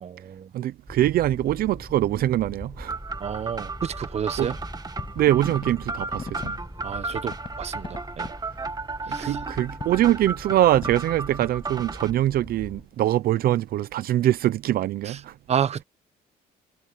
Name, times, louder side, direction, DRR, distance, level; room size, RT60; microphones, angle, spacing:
voice 1, 0.0-0.5 3.2-4.5 6.8-8.3 9.1-9.4 15.1-15.2 15.5-15.8, right 8 dB, 40° right, 0.9 m, -30 dB
voice 2, 0.5-2.9 4.4-4.5 5.2-6.6 9.1-15.3, right 13 dB, 60° right, 0.6 m, -23 dB
sound 1, 0.9-12.8, equal, ahead, 7.8 m, -42 dB
sound 2, 2.9-12.1, right 3 dB, 25° right, 2.0 m, -34 dB
sound 3, 3.5-13.9, left 5 dB, 30° left, 8.0 m, -44 dB
cardioid pair, 110°, 17 cm